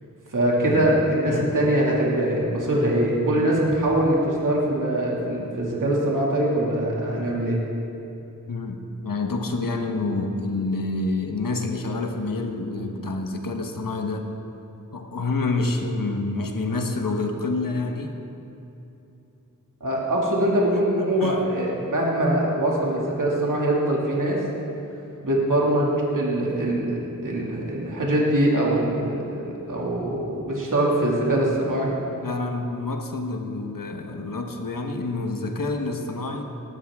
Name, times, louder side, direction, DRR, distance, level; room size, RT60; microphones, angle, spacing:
voice 1, 0.3-7.6 19.8-24.4 25.2-31.9, right 1 dB, 65° right, -4 dB, 2.4 m, -23 dB
voice 2, 8.5-14.3 14.9-18.1 21.2-21.4 32.2-36.4, left 3 dB, 80° left, 4 dB, 1.3 m, -28 dB
18.5 x 12.5 x 3.7 m, 2.9 s
cardioid pair, 50°, 33 cm